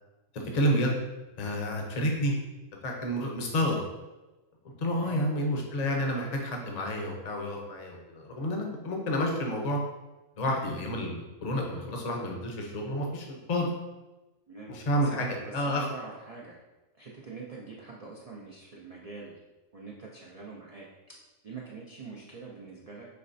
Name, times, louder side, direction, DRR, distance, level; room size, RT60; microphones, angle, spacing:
voice 1, 0.5-1.0 1.4-2.3 2.8-3.8 4.8-9.8 10.4-13.7 14.7-15.9, equal, 40° left, 1 dB, 0.6 m, -29 dB
voice 2, 4.9-5.3 14.5-16.6 17.0-19.4 19.7-20.9 21.4-23.1, right 4 dB, 75° right, -3 dB, 0.3 m, -44 dB
5.6 x 3.1 x 2.6 m, 1.1 s
omnidirectional pair, 1.4 m